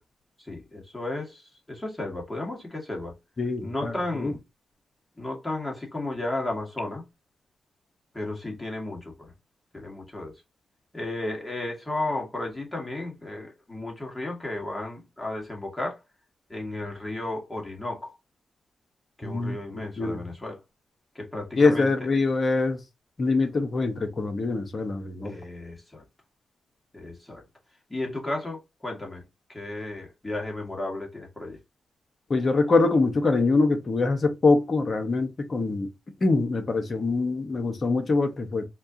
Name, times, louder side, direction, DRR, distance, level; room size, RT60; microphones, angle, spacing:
voice 1, 0.4-3.2 3.6-4.4 5.2-7.1 8.1-9.3 9.7-10.4 10.9-16.0 16.5-18.2 19.2-20.6 21.2-21.9 25.2-26.1 26.9-27.4 27.9-31.6, left 2 dB, 25° left, 1.7 m, -34 dB
voice 2, 3.4-3.9 4.2-4.3 19.2-19.6 20.0-20.2 21.6-22.8 23.2-25.3 32.3-35.9 36.2-38.7, left 3 dB, 50° left, 1.1 m, -24 dB
4.2 x 2.5 x 2.8 m
supercardioid pair, 45°, 0 cm